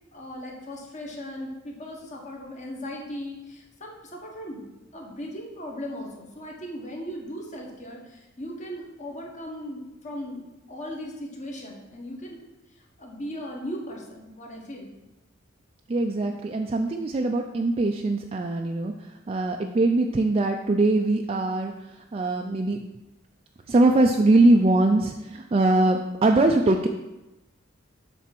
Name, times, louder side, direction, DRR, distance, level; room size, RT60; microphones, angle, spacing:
voice 1, 0.1-4.7 4.9-12.4 12.7-14.9, equal, 35° left, 0 dB, 1.3 m, -38 dB
voice 2, 15.9-18.9 19.3-21.7 22.1-22.8 23.7-26.9, right 2 dB, 30° right, 2 dB, 0.4 m, -22 dB
7.4 x 3.5 x 5.9 m, 0.99 s
head